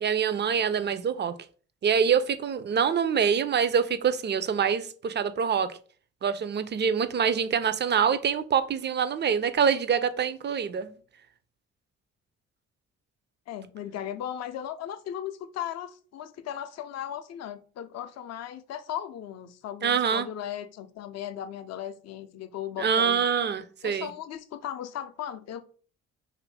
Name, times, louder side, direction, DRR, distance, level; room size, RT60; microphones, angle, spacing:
voice 1, 0.0-1.3 1.8-5.8 6.2-10.9 19.8-20.3 22.8-24.1, right 7 dB, 30° right, 0.4 m, -25 dB
voice 2, 13.5-23.2 23.8-25.6, left 10 dB, 50° left, 0.5 m, -37 dB
2.6 x 2.6 x 3.3 m
hypercardioid pair, 40°, 35 cm